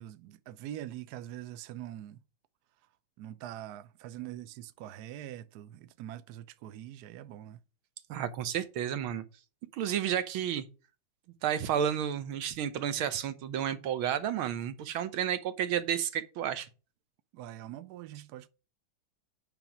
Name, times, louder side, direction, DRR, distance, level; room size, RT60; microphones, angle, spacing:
voice 1, 0.0-2.2 3.2-7.6 17.3-18.5, right 12 dB, 70° right, 1.0 m, -43 dB
voice 2, 8.1-9.2 9.7-10.7 11.4-16.7, right 9 dB, 85° right, 1.8 m, -31 dB
9.0 x 3.6 x 5.8 m
omnidirectional pair, 2.2 m